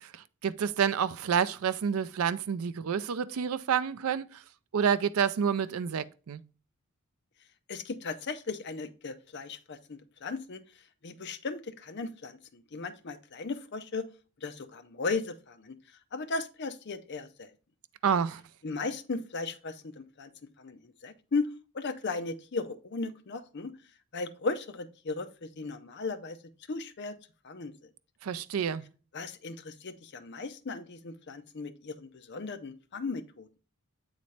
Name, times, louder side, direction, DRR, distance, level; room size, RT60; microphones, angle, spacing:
voice 1, 0.0-4.4 4.7-6.4 18.0-18.4 28.2-28.9, right 7 dB, 75° right, 0.4 m, -29 dB
voice 2, 7.7-10.6 11.0-14.1 14.4-15.8 16.1-17.5 18.6-20.3 20.6-21.5 21.7-23.7 24.1-26.4 26.7-27.2 27.4-27.9 29.1-33.5, left 3 dB, 50° left, 0.5 m, -36 dB
8.4 x 4.0 x 3.2 m
head